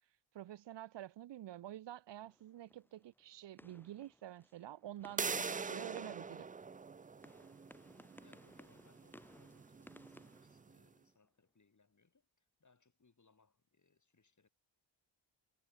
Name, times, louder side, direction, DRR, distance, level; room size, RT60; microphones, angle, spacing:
voice 1, 0.3-6.5, right 13 dB, 60° right, 0.6 m, -49 dB
sound 1, 2.2-11.3, left 1 dB, 5° left, 1.4 m, -63 dB
sound 2, 5.2-10.8, right 5 dB, 20° right, 0.3 m, -44 dB
voice 2, 8.2-14.5, left 4 dB, 35° left, 7.2 m, -72 dB
wide cardioid pair, 110°, 49 cm